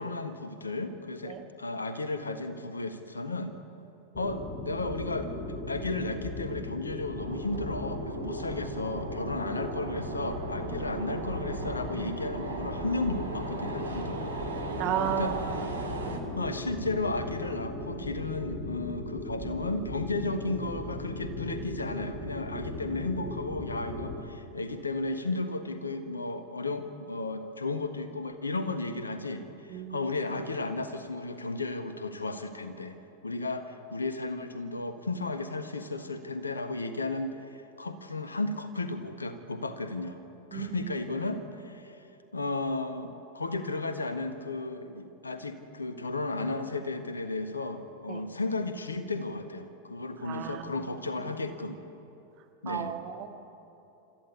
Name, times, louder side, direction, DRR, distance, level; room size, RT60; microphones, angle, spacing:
voice 1, 0.0-3.6 4.1-14.2 15.1-15.4 16.4-33.0 33.2-40.2 40.5-42.0 42.3-51.8 52.6-53.0, left 2 dB, 75° left, 9 dB, 1.5 m, -34 dB
sound 1, 4.1-24.1, left 1 dB, 35° left, 4.6 m, -37 dB
sound 2, 7.2-16.2, right 3 dB, 75° right, 2.5 m, -38 dB
voice 2, 14.8-15.7 29.7-30.1 40.5-40.9 48.1-48.2 50.2-50.7 52.7-53.3, right 10 dB, 40° right, 4 dB, 2.0 m, -34 dB
27.5 x 14.0 x 8.3 m, 2.9 s
figure-of-eight pair, 90°, 0 cm